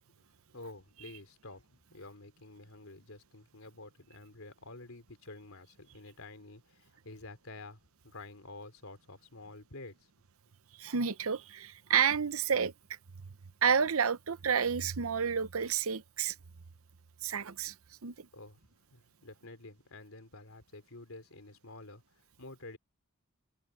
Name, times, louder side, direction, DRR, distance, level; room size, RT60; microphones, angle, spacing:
voice 1, 0.5-10.1 18.3-18.6 18.9-22.8, left 2 dB, 80° left, 3.3 m, -50 dB
voice 2, 10.8-12.7 13.6-16.3 17.2-17.7 18.0-18.3, right 7 dB, 85° right, 0.8 m, -30 dB
head